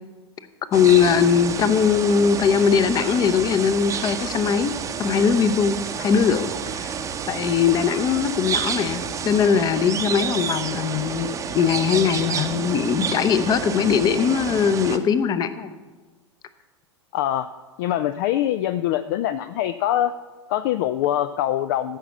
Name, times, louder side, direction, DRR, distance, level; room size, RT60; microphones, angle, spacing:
voice 1, 0.7-4.7 5.0-6.9 7.3-15.8, left 7 dB, 25° left, 12 dB, 0.8 m, -20 dB
sound 1, 0.7-15.0, right 7 dB, 20° right, 0.8 m, -30 dB
voice 2, 17.1-17.5 17.8-20.1 20.5-22.0, left 12 dB, 45° left, 12 dB, 0.4 m, -23 dB
14.5 x 6.0 x 6.9 m, 1.3 s
figure-of-eight pair, 90°, 15 cm